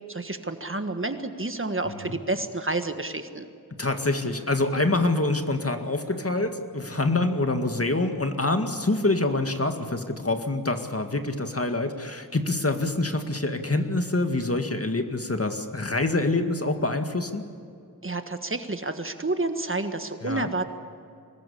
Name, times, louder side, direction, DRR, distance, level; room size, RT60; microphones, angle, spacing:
voice 1, 0.1-3.5 18.0-20.6, right 2 dB, 35° right, 8 dB, 1.5 m, -29 dB
voice 2, 1.9-2.2 3.8-17.4 20.2-20.5, left 2 dB, 40° left, 6 dB, 2.0 m, -26 dB
24.5 x 20.0 x 8.5 m, 2.4 s
wide cardioid pair, 60°, 35 cm